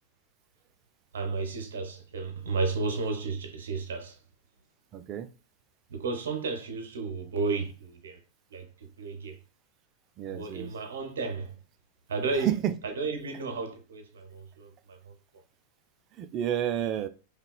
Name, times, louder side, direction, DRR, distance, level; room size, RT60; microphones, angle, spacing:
voice 1, 1.1-4.2 5.9-8.2 8.5-9.4 10.3-11.6 12.1-12.5 12.8-15.1, right 4 dB, 65° right, 0.7 m, -33 dB
voice 2, 4.9-5.3 10.2-10.7 12.4-12.7 16.1-17.1, right 11 dB, 35° right, 0.4 m, -30 dB
5.2 x 2.2 x 2.3 m
figure-of-eight pair, 90°, 0 cm